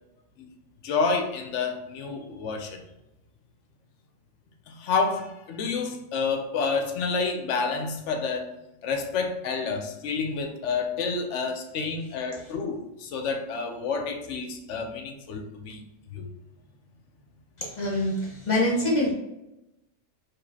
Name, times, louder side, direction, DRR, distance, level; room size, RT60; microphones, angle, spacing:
voice 1, 0.8-2.8 4.7-8.5 8.8-15.8 16.1-16.3, left 4 dB, 65° left, 5 dB, 0.9 m, -29 dB
voice 2, 17.6-19.1, left 1 dB, 35° left, -3 dB, 1.1 m, -25 dB
4.8 x 3.2 x 2.7 m, 0.91 s
omnidirectional pair, 1.4 m